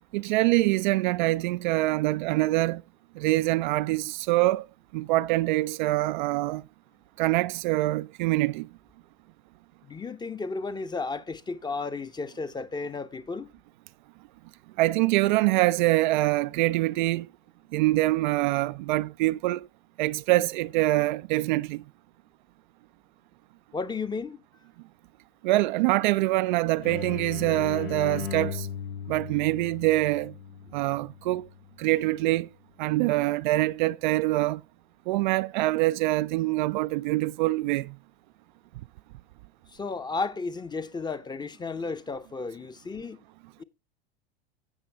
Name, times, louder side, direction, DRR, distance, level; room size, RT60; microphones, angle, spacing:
voice 1, 0.1-2.8 3.2-4.6 4.9-6.6 7.2-8.7 14.8-17.3 17.7-19.7 20.0-21.8 25.4-28.7 29.1-30.3 30.7-31.5 31.8-32.5 32.8-34.6 35.1-37.9, right 18 dB, 50° right, 0.4 m, -24 dB
voice 2, 9.8-13.5 23.7-24.4 39.7-43.2 43.6-43.7, left 4 dB, 15° left, 0.8 m, -33 dB
sound 1, 26.8-32.3, left 8 dB, 70° left, 1.3 m, -38 dB
15.5 x 5.9 x 3.4 m
figure-of-eight pair, 85°, 30 cm